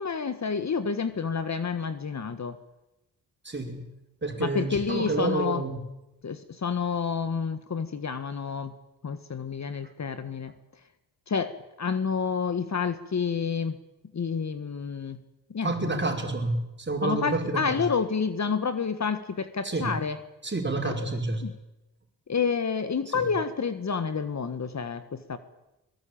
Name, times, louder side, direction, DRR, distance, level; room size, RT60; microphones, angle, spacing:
voice 1, 0.0-2.6 4.4-5.6 6.2-8.7 9.0-10.5 11.3-11.5 11.8-13.8 14.1-15.2 15.5-16.0 17.0-20.2 20.8-21.1 21.4-21.5 22.3-25.4, left 5 dB, 40° left, 11 dB, 1.7 m, -29 dB
voice 2, 3.5-3.9 4.2-5.9 15.6-17.8 19.6-20.0 20.4-21.5 23.1-23.3, right 2 dB, 25° right, 3 dB, 5.3 m, -29 dB
22.0 x 19.0 x 8.8 m, 0.93 s
cardioid pair, 70°, 41 cm